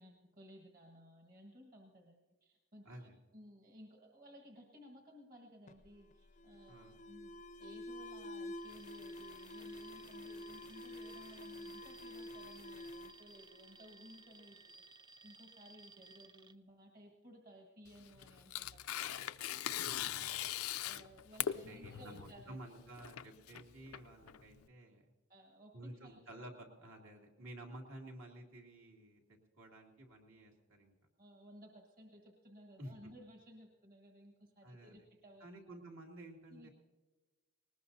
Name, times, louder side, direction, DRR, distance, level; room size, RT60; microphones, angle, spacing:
voice 1, 0.0-7.3 7.6-19.1 20.8-22.6 25.3-26.4 31.2-35.8 36.5-36.7, equal, 40° right, 2 dB, 1.5 m, -58 dB
voice 2, 2.8-3.2 6.7-6.9 19.8-20.5 21.5-25.1 25.7-30.9 32.8-32.9 34.6-34.9 35.4-36.7, right 1 dB, 70° right, 0 dB, 2.6 m, -52 dB
Alarm, 5.7-14.3, left 1 dB, 35° left, 0.5 m, -49 dB
Alarm 2, 8.5-16.5, right 4 dB, 20° right, 0.3 m, -59 dB
Tearing, 17.9-24.6, left 11 dB, 85° left, 0.5 m, -41 dB
20.0 x 19.5 x 2.7 m, 1.3 s
head